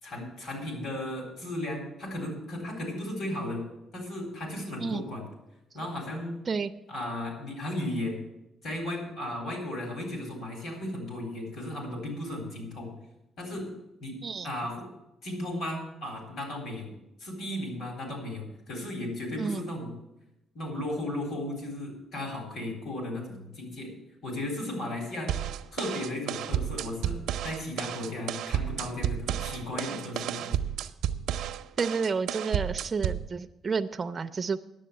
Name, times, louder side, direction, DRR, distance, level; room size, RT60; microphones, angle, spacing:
voice 1, 0.0-3.6 3.9-5.2 5.7-6.3 6.9-8.2 8.6-12.9 13.4-13.7 14.0-14.2 14.4-14.9 15.2-16.9 17.2-19.9 20.5-23.9 24.2-25.3 25.7-27.2 27.4-30.5, left 1 dB, 60° left, 2 dB, 3.9 m, -35 dB
voice 2, 14.2-14.5 19.4-19.6 31.8-34.6, right 5 dB, 20° right, 7 dB, 0.4 m, -30 dB
sound 1, 25.3-33.3, right 10 dB, 75° right, 0.5 m, -32 dB
10.0 x 7.5 x 8.5 m, 0.91 s
cardioid pair, 175°, 0 cm